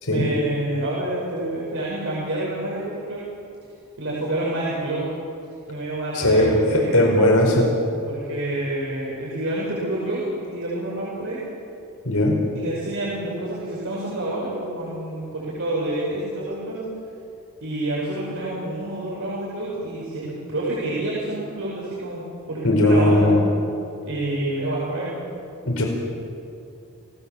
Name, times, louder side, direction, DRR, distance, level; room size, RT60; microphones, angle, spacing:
voice 1, 0.1-3.2 4.0-5.0 5.7-7.0 8.1-11.4 12.5-16.9 17.6-23.3 24.1-25.1, right 1 dB, 65° right, -6 dB, 5.9 m, -28 dB
voice 2, 6.1-7.7 12.0-12.4 22.6-23.4 25.6-25.8, left 1 dB, 90° left, 0 dB, 5.0 m, -18 dB
29.5 x 18.5 x 7.3 m, 2.6 s
head